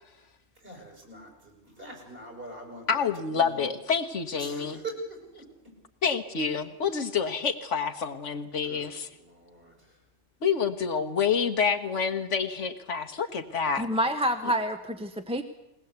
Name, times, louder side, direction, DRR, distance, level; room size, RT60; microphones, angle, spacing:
voice 1, 0.6-1.3 1.6-2.9 3.3-3.7 4.4-5.4 8.7-8.9 9.2-9.7, right 2 dB, 50° right, 2 dB, 7.3 m, -42 dB
voice 2, 2.9-4.8 6.0-9.1 10.4-13.9, left 6 dB, 75° left, 6 dB, 1.7 m, -28 dB
voice 3, 13.8-15.4, equal, 5° right, 6 dB, 1.0 m, -28 dB
21.5 x 19.5 x 8.2 m, 0.89 s
omnidirectional pair, 1.3 m